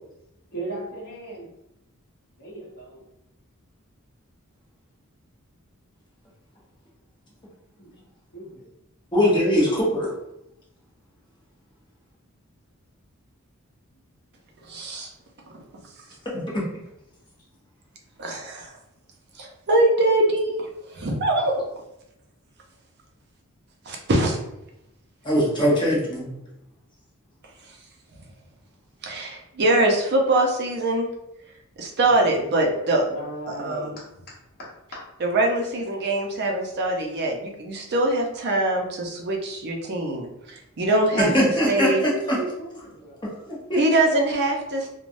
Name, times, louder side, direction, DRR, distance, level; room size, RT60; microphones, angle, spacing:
voice 1, 0.5-1.5 2.4-3.1 7.8-8.0 8.3-8.6 32.0-32.3 33.1-34.0 34.9-35.0 40.7-43.2, right 1 dB, 45° left, -6 dB, 0.9 m, -35 dB
voice 2, 9.1-10.1 25.2-26.3 41.2-42.4 43.5-43.8, equal, 20° left, -5 dB, 0.8 m, -21 dB
voice 3, 14.6-15.1 15.5-15.6 18.2-18.8 19.4-21.7 23.9-24.4 29.0-31.1 31.8-33.1 33.5-33.9 35.2-41.3 41.7-42.0 43.8-44.9, right 2 dB, 50° right, 1 dB, 0.5 m, -23 dB
3.2 x 2.1 x 2.5 m, 0.85 s
head